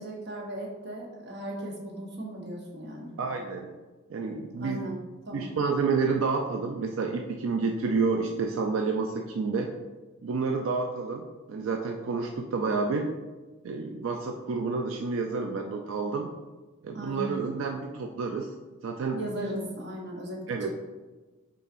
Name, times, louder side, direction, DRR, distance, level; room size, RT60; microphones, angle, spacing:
voice 1, 0.0-3.1 4.5-5.0 5.3-5.5 16.9-17.4 19.2-20.7, right 1 dB, 55° right, -1 dB, 1.0 m, -37 dB
voice 2, 3.2-3.8 4.1-4.8 5.3-9.7 10.2-13.1 13.6-16.3 16.8-18.5 18.8-19.2 20.5-20.7, right 4 dB, 85° right, 3 dB, 0.4 m, -29 dB
5.4 x 3.9 x 2.5 m, 1.2 s
head